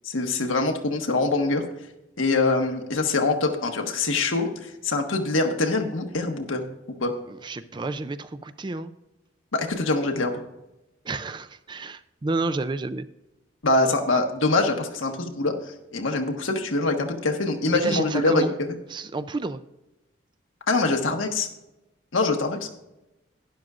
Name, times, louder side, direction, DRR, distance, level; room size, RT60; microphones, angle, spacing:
voice 1, 0.0-1.6 2.2-6.6 7.0-7.1 9.5-10.3 13.6-15.6 15.9-18.4 20.7-21.5 22.1-22.7, left 3 dB, 90° left, 4 dB, 1.3 m, -24 dB
voice 2, 7.3-8.9 11.0-13.1 17.7-18.5 18.9-19.6, right 3 dB, 25° right, 12 dB, 0.4 m, -30 dB
12.0 x 11.0 x 2.5 m, 0.97 s
head